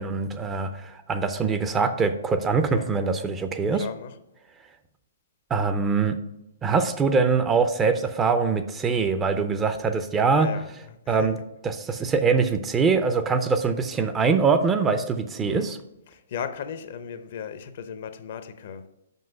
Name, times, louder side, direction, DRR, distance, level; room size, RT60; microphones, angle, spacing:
voice 1, 0.0-3.9 5.5-6.2 6.6-10.5 11.1-11.4 11.6-15.8, right 5 dB, 15° right, 0.6 m, -23 dB
voice 2, 3.7-4.2 10.3-11.3 11.9-12.0 15.4-15.7 16.1-18.9, left 7 dB, 55° left, 0.7 m, -36 dB
5.4 x 5.4 x 5.3 m
hypercardioid pair, 125°, 0 cm